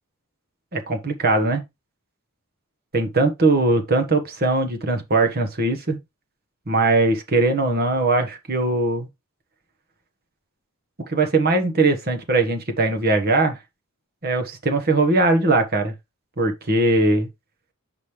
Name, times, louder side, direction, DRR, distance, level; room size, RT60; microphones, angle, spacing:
voice 1, 0.7-1.6 2.9-6.0 6.7-9.1 11.1-13.6 14.2-15.9 16.4-17.3, right 2 dB, 45° right, 1.3 m, -20 dB
7.1 x 5.2 x 3.3 m
head